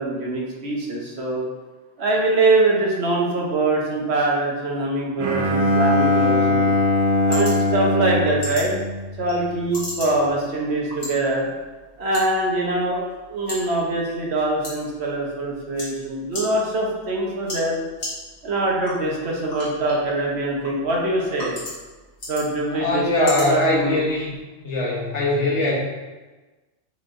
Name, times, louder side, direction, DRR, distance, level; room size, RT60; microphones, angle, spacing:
voice 1, 0.0-1.4 2.0-6.7 7.3-8.7 9.2-11.5 12.0-13.0 13.3-17.8 18.4-21.6 22.3-24.0, right 2 dB, 65° right, -2 dB, 1.2 m, -23 dB
Bowed string instrument, 5.2-9.6, left 2 dB, 50° right, 0.4 m, -21 dB
sound 1, 6.4-24.4, left 1 dB, 60° left, 1.8 m, -39 dB
voice 2, 22.7-24.4 24.6-25.7, left 1 dB, 80° left, -4 dB, 1.4 m, -22 dB
6.5 x 3.2 x 2.5 m, 1.2 s
omnidirectional pair, 1.2 m